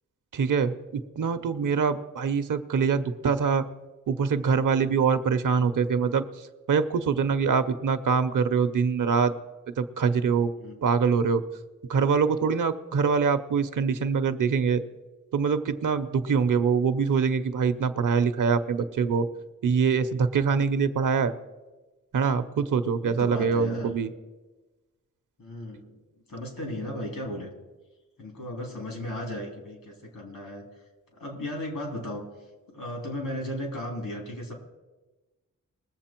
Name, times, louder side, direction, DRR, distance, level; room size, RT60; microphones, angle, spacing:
voice 1, 0.3-3.6 4.1-6.2 6.7-9.3 9.8-10.5 10.8-11.4 11.9-14.8 15.3-19.3 19.6-21.3 22.1-24.1, right 5 dB, 70° right, 10 dB, 0.7 m, -24 dB
voice 2, 22.9-24.0 25.4-26.0 26.3-27.5 28.2-30.6 31.1-32.2 32.7-34.5, left 1 dB, 85° left, 1 dB, 3.2 m, -35 dB
21.0 x 7.5 x 4.4 m, 1.2 s
wide cardioid pair, 175°, 32 cm